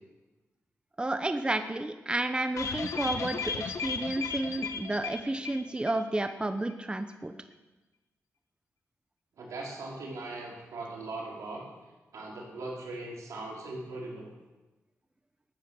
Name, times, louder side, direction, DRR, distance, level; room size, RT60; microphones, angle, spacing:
voice 1, 1.0-7.3, right 2 dB, 20° right, 8 dB, 0.9 m, -31 dB
sound 1, 2.6-6.0 6.3-6.4 6.7-6.8, left 5 dB, 80° left, 1.3 m, -35 dB
voice 2, 9.4-11.6 12.1-14.3, right 2 dB, 85° right, -3 dB, 4.0 m, -39 dB
13.5 x 9.5 x 6.9 m, 1.1 s
cardioid pair, 60°, 5 cm